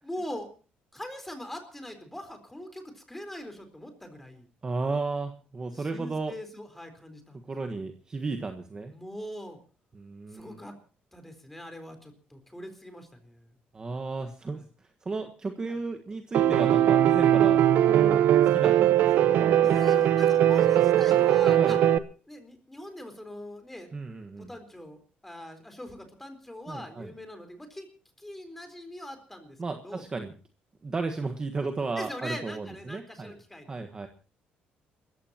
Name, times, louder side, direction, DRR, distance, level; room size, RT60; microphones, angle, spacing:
voice 1, 0.0-0.5 0.9-4.5 5.7-7.5 8.9-9.6 10.3-10.8 11.1-13.5 14.5-14.6 15.7-15.8 19.6-21.8 22.3-23.9 24.5-27.9 28.2-29.6 29.8-30.0 32.0-33.7, left 1 dB, 5° left, 7 dB, 4.0 m, -42 dB
voice 2, 4.6-6.3 7.5-8.9 9.9-10.6 13.7-14.6 15.0-18.2 18.5-19.9 21.6-21.8 23.9-24.5 26.7-27.1 29.6-30.3 30.8-33.3 33.7-34.1, right 3 dB, 25° right, 5 dB, 1.4 m, -34 dB
Piano, 16.3-22.0, right 11 dB, 70° right, 1.0 m, -20 dB
29.0 x 15.0 x 2.9 m, 0.38 s
cardioid pair, 145°, 3 cm